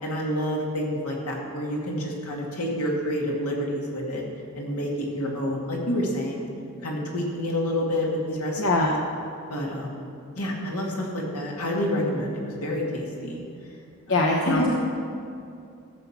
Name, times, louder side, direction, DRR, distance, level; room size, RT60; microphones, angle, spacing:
voice 1, 0.0-4.2 4.5-6.5 6.8-8.9 9.5-10.0 10.4-13.4 14.1-14.2 14.4-14.7, left 1 dB, 85° left, -2 dB, 2.4 m, -28 dB
voice 2, 8.6-9.0 14.1-14.7, left 2 dB, 60° left, -1 dB, 0.9 m, -22 dB
14.5 x 7.0 x 5.9 m, 2.5 s
head